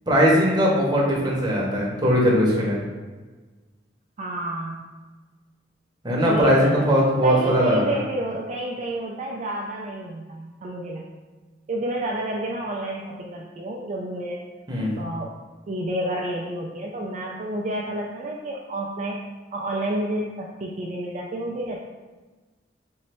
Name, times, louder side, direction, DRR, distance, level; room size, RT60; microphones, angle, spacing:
voice 1, 0.1-2.8 6.0-8.0 14.7-14.9, equal, 25° right, -4 dB, 0.9 m, -20 dB
voice 2, 4.2-4.9 6.3-6.9 7.2-11.0 11.7-14.4 14.9-15.3 15.7-19.2 19.5-21.8, right 1 dB, 40° right, -2 dB, 0.3 m, -29 dB
3.1 x 2.7 x 4.2 m, 1.3 s
head